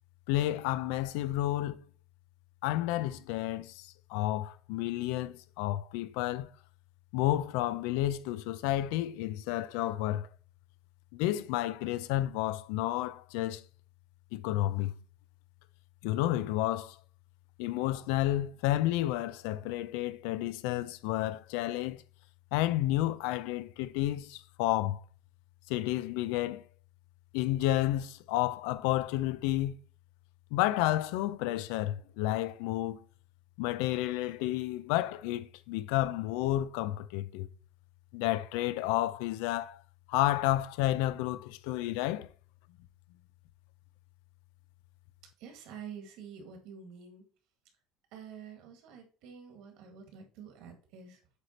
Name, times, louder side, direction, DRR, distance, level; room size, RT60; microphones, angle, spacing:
voice 1, 0.3-1.8 2.6-6.5 7.1-10.3 11.1-13.6 14.3-14.9 16.0-17.0 17.6-22.0 22.5-25.0 25.7-26.6 27.3-29.8 30.5-33.0 33.6-37.5 38.1-39.8 40.1-42.3, left 15 dB, 85° left, 0.4 m, -31 dB
voice 2, 45.4-47.3 48.1-51.2, right 7 dB, 70° right, 1.8 m, -48 dB
8.2 x 3.3 x 4.3 m
cardioid pair, 150°, 0 cm